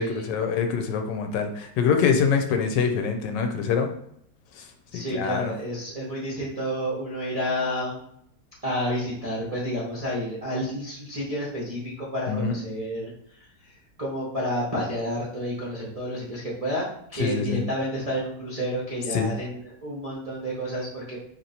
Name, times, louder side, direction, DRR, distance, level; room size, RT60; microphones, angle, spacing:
voice 1, 0.0-3.9 4.6-4.7 4.9-5.5 12.3-12.6 17.2-17.6 19.1-19.3, left 6 dB, 90° left, 5 dB, 1.2 m, -25 dB
voice 2, 4.9-8.0 8.6-13.7 14.0-21.2, equal, 40° right, -7 dB, 0.5 m, -30 dB
3.0 x 2.9 x 4.0 m, 0.72 s
omnidirectional pair, 1.8 m